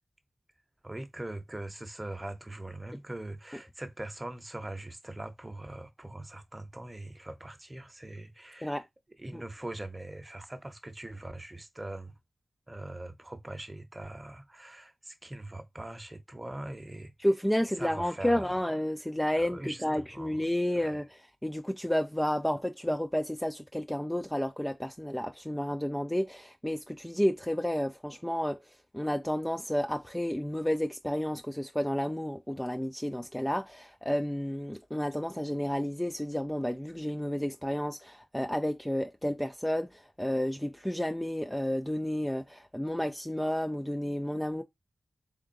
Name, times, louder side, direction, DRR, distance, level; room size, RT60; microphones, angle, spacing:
voice 1, 0.8-8.8 9.2-12.1 12.7-17.1 17.8-18.6 19.4-19.8 20.1-20.4 20.8-21.0, right 1 dB, 20° right, 0.7 m, -42 dB
voice 2, 17.2-44.6, equal, 5° left, 0.3 m, -31 dB
3.7 x 3.5 x 2.5 m
wide cardioid pair, 85°, 0 cm